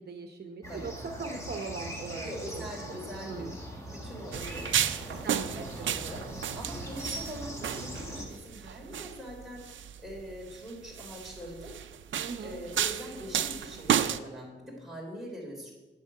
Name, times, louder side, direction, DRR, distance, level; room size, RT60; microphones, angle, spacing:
voice 1, 0.0-2.3 2.5-2.6 2.9-3.5 5.2-6.4 12.2-12.6, right 4 dB, 55° right, 4 dB, 1.0 m, -40 dB
sound 1, 0.6-8.2, right 1 dB, 15° left, 2.0 m, -41 dB
voice 2, 2.2-3.6 3.9-11.8 12.4-15.7, equal, ahead, -3 dB, 3.8 m, -43 dB
sound 2, 4.3-14.2, right 9 dB, 70° right, 0.5 m, -33 dB
10.5 x 7.8 x 7.6 m, 1.1 s
wide cardioid pair, 155°, 20 cm